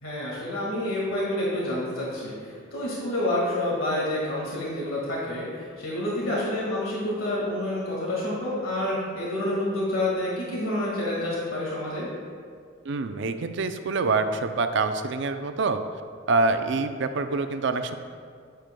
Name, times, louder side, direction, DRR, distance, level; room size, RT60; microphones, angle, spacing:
voice 1, 0.0-12.1, left 1 dB, 90° left, -5 dB, 1.9 m, -28 dB
voice 2, 12.8-15.8 16.3-18.0, right 3 dB, 65° right, 8 dB, 0.5 m, -26 dB
9.5 x 9.0 x 2.2 m, 2.1 s
head